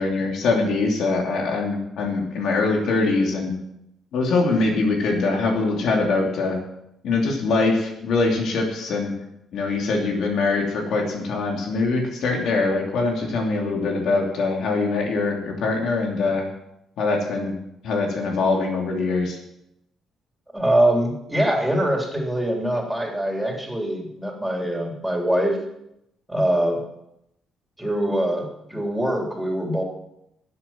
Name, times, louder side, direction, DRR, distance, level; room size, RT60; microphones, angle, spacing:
voice 1, 0.0-3.5 4.1-6.6 7.0-9.1 9.5-16.4 17.0-17.5 17.8-19.4, left 3 dB, 75° left, 1 dB, 3.0 m, -23 dB
voice 2, 20.5-25.6 26.3-26.8 27.8-29.8, right 1 dB, 5° right, 0 dB, 3.5 m, -23 dB
12.0 x 7.9 x 7.5 m, 0.82 s
cardioid pair, 90°, 0 cm